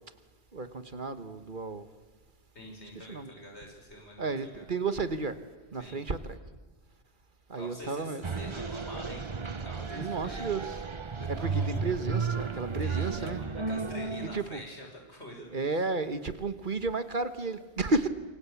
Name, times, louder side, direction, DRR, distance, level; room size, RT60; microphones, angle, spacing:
voice 1, 0.5-1.9 2.9-3.3 4.2-5.4 5.7-6.4 7.5-8.2 9.9-10.8 11.3-13.4 14.3-14.6 15.5-18.1, right 3 dB, 50° right, 11 dB, 1.5 m, -32 dB
voice 2, 2.5-4.7 5.8-6.0 7.5-10.5 11.2-11.8 12.8-15.9, left 1 dB, 85° left, 1 dB, 6.4 m, -46 dB
sound 1, 8.2-14.4, right 5 dB, 30° right, 0.9 m, -33 dB
27.0 x 24.0 x 8.4 m, 1.2 s
omnidirectional pair, 1.1 m